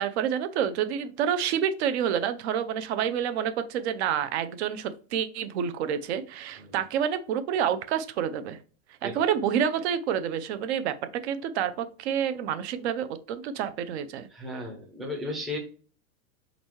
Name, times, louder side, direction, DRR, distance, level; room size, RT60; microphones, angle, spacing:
voice 1, 0.0-8.6 9.0-14.3, right 8 dB, 55° right, 11 dB, 0.6 m, -28 dB
voice 2, 14.3-15.6, left 1 dB, ahead, -1 dB, 0.5 m, -35 dB
4.3 x 4.0 x 3.0 m, 0.39 s
supercardioid pair, 160°, 41 cm